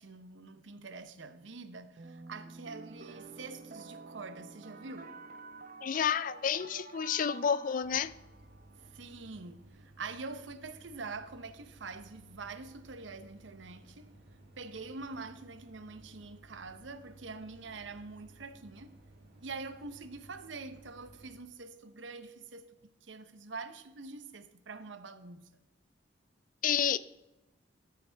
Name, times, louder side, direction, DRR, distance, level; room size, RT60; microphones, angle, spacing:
voice 1, 0.0-5.1 8.8-14.1 14.6-18.9 19.4-22.8 23.0-25.5, right 4 dB, 85° right, 0.8 m, -45 dB
sound 1, 2.0-9.0, right 3 dB, 50° right, 0.7 m, -49 dB
voice 2, 5.8-8.1 26.6-27.0, left 8 dB, 45° left, 0.4 m, -30 dB
sound 2, 7.8-21.4, right 1 dB, 70° right, 2.0 m, -57 dB
14.0 x 7.2 x 3.4 m
head